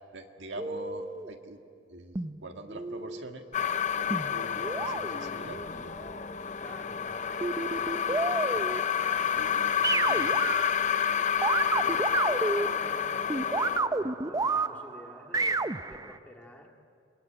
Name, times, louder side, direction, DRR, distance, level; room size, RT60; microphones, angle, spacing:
voice 1, 0.1-1.6 1.9-3.4 4.0-6.0 8.5-8.7 9.3-9.6 10.1-10.6, right 2 dB, 65° right, 4 dB, 1.9 m, -44 dB
sound 1, 0.6-1.3 2.1-3.2 4.1-6.1 7.4-9.3 9.8-11.1 11.4-16.2, right 3 dB, 20° right, 0.6 m, -31 dB
sound 2, 3.5-13.8, left 8 dB, 40° left, 0.6 m, -29 dB
voice 2, 6.6-7.4 7.7-8.0 8.5-10.2 11.1-16.7, equal, 10° left, 1 dB, 2.3 m, -49 dB
28.5 x 22.0 x 8.9 m, 2.3 s
head